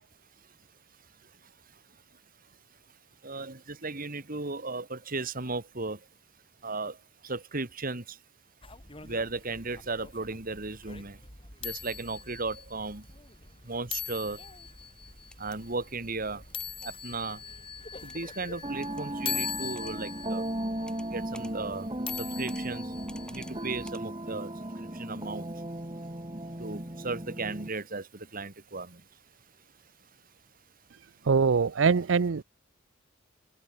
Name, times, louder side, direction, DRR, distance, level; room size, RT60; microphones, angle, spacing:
voice 1, 3.2-6.0 6.6-6.9 7.3-8.0 9.0-11.2 11.6-13.0 13.7-14.4 15.4-16.4 16.8-17.4 18.1-20.4 21.1-21.9 22.4-22.8 23.3-24.5 25.0-25.5 26.6-28.0 28.3-28.9, right 3 dB, 45° right, 2.4 m, -35 dB
sound 1, 8.6-23.9, left 7 dB, 30° left, 5.7 m, -42 dB
sound 2, 15.3-15.6 16.6-16.9 18.1-18.4 18.8-19.0 19.3-19.9 20.9-21.1 21.3-21.5 22.1-22.6 23.1-23.5 23.8-24.0, left 1 dB, 5° left, 2.6 m, -51 dB
sound 3, 18.6-27.7, right 1 dB, 25° right, 3.0 m, -36 dB
voice 2, 31.3-32.4, right 5 dB, 70° right, 0.5 m, -23 dB
head